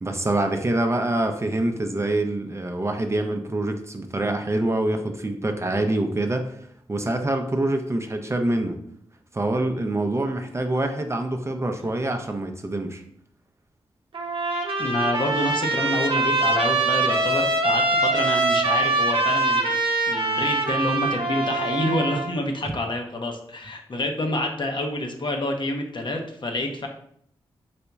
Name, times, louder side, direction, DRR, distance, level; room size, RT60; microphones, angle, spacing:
voice 1, 0.0-8.8 9.3-13.0, right 2 dB, 25° right, 5 dB, 0.5 m, -25 dB
Trumpet, 14.1-22.3, right 2 dB, 55° right, 0.7 m, -23 dB
voice 2, 14.8-19.8 20.1-26.9, left 1 dB, 50° left, 3 dB, 0.7 m, -27 dB
4.1 x 2.8 x 2.3 m, 0.67 s
supercardioid pair, 40°, 11 cm